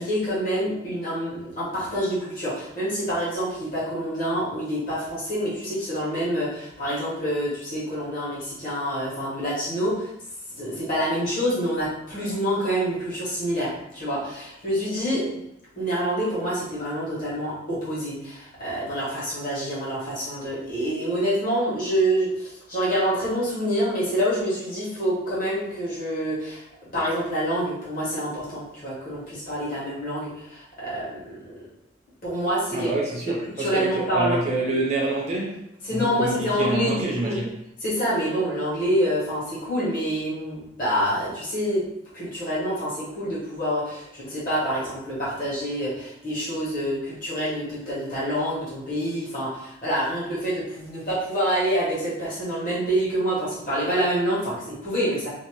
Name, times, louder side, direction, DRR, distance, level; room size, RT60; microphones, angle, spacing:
voice 1, 0.0-10.1 10.6-15.3 15.8-26.7 26.9-31.5 32.2-32.9 33.3-34.4 35.8-37.3 37.8-41.8 42.1-55.3, equal, 45° left, -8 dB, 1.2 m, -27 dB
voice 2, 32.7-37.5, right 2 dB, 35° right, -2 dB, 0.4 m, -27 dB
2.6 x 2.1 x 3.0 m, 0.82 s
head